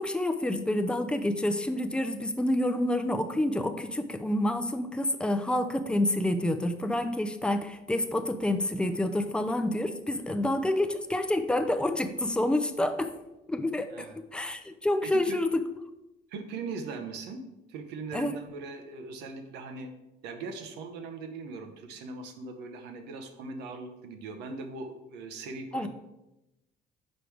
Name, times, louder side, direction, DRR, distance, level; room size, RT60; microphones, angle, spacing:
voice 1, 0.0-13.1 13.5-15.6 18.1-18.3 25.7-25.9, left 1 dB, 5° left, 8 dB, 0.5 m, -28 dB
voice 2, 15.0-15.4 16.3-17.4 17.7-19.9 20.2-25.9, right 4 dB, 90° right, 6 dB, 0.9 m, -40 dB
5.2 x 4.9 x 4.5 m, 0.94 s
cardioid pair, 110°, 17 cm